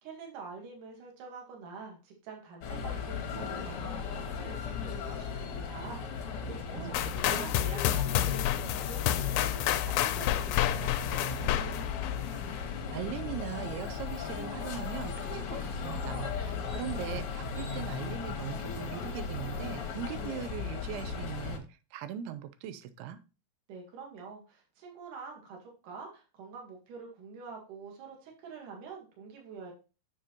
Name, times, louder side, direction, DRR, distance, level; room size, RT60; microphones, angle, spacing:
voice 1, 0.0-7.0 7.2-11.8 23.7-29.7, right 5 dB, 60° right, 0 dB, 3.2 m, -46 dB
sound 1, 2.6-21.6, left 6 dB, 65° left, 1.4 m, -36 dB
sound 2, 6.9-12.8, left 12 dB, 80° left, 2.2 m, -30 dB
voice 2, 12.5-21.7 21.9-23.2, right 9 dB, 90° right, 12 dB, 2.7 m, -40 dB
7.3 x 7.2 x 2.9 m, 0.32 s
omnidirectional pair, 4.4 m